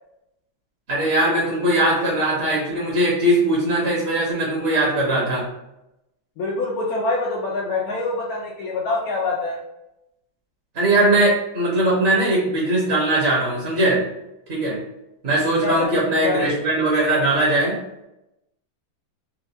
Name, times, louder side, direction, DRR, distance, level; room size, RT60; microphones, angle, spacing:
voice 1, 0.9-5.4 10.7-14.0 14.5-14.8 15.2-17.8, right 1 dB, 45° right, -5 dB, 0.9 m, -20 dB
voice 2, 6.4-9.6 15.6-15.8 16.2-16.5, left 3 dB, 75° left, -4 dB, 0.8 m, -25 dB
4.3 x 2.2 x 2.7 m, 0.88 s
omnidirectional pair, 2.2 m